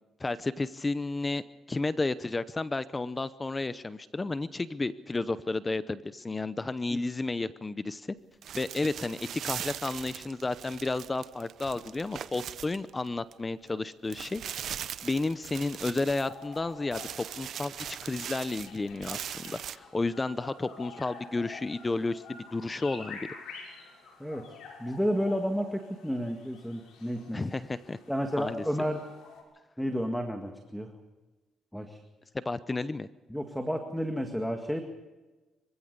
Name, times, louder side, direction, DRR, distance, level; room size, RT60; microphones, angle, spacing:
voice 1, 0.2-1.4 1.7-8.1 8.5-17.0 17.4-23.2 27.3-28.0 28.4-28.6 32.4-33.1, left 3 dB, 20° left, 15 dB, 0.7 m, -32 dB
sound 1, 8.4-13.3 13.7-13.8 14.1-16.6 16.9-19.8, right 9 dB, 65° right, 0.7 m, -40 dB
sound 2, 16.3-29.4, left 5 dB, 80° left, 6.5 m, -48 dB
voice 2, 24.8-27.4 28.1-29.0 29.8-30.9 31.7-32.0 33.3-34.8, equal, ahead, 5 dB, 1.9 m, -31 dB
25.0 x 16.0 x 6.8 m, 1.2 s
cardioid pair, 90°, 0 cm